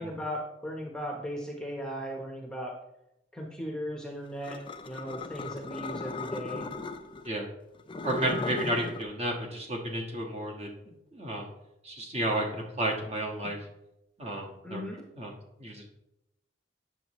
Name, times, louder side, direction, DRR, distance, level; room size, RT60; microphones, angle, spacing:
voice 1, 0.0-2.7 3.3-4.6 4.8-6.7 14.6-15.0, equal, 5° left, -1 dB, 0.9 m, -37 dB
sound 1, 4.4-7.3 7.8-9.0, left 3 dB, 30° left, 0.4 m, -37 dB
voice 2, 8.0-11.5 11.8-13.7 14.2-14.8 15.1-15.9, right 1 dB, 35° right, 0 dB, 1.4 m, -32 dB
9.1 x 6.5 x 3.1 m, 0.84 s
head